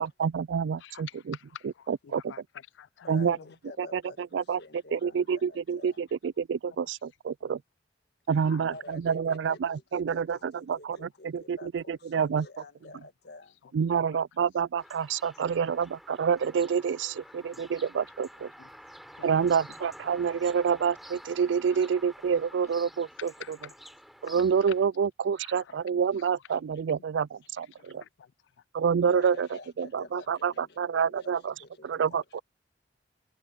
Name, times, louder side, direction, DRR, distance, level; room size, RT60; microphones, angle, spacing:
voice 1, 0.0-1.4 1.6-2.3 3.1-3.4 3.8-4.0 4.3-4.6 4.9-7.6 8.3-12.5 13.7-18.5 19.2-23.3 24.2-28.0 28.7-29.5 29.8-31.5 31.8-32.4, right 6 dB, 80° right, 0.4 m, -28 dB
voice 2, 0.8-3.5 7.4-7.5 8.4-8.7 14.1-14.2 15.4-15.5 17.5-17.7 18.6-18.7 19.2-19.5 21.8-21.9 23.2-23.7 24.3-24.4 25.4-25.7 27.1-27.2 27.8-28.3 32.1-32.2, left 9 dB, 85° left, 0.4 m, -48 dB
voice 3, 3.0-6.2 8.7-13.6 15.3-15.4 16.8-17.2 29.1-32.4, left 3 dB, 60° left, 1.7 m, -49 dB
sound 1, 14.8-24.9, equal, ahead, 5.4 m, -50 dB
head